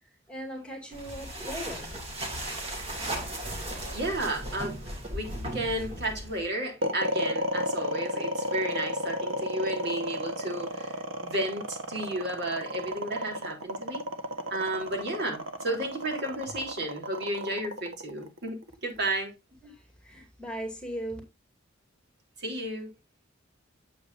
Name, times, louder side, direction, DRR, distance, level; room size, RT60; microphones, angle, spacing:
voice 1, 0.0-1.9 2.9-3.0 19.6-21.2, right 1 dB, 5° left, 2.4 m, -39 dB
sound 1, 0.9-6.5, right 1 dB, 30° right, 2.6 m, -36 dB
voice 2, 3.7-4.8 5.1-10.9 11.2-14.0 14.5-19.3 22.4-22.9, right 1 dB, 55° right, 3.5 m, -33 dB
sound 2, 6.8-19.1, equal, 75° right, 1.4 m, -32 dB
8.4 x 8.3 x 2.7 m
head